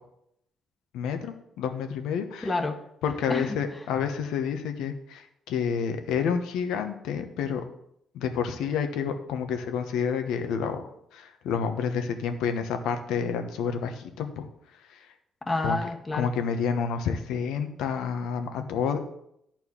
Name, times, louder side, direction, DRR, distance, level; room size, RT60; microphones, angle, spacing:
voice 1, 0.9-2.5 3.0-7.6 8.1-14.5 14.9-15.0 15.6-15.8 16.1-19.0, left 6 dB, 90° left, 7 dB, 1.1 m, -29 dB
voice 2, 2.4-2.8 3.3-3.8 15.4-16.3, left 2 dB, 25° left, 7 dB, 1.2 m, -29 dB
11.0 x 4.5 x 7.2 m, 0.77 s
cardioid pair, 90°, 0 cm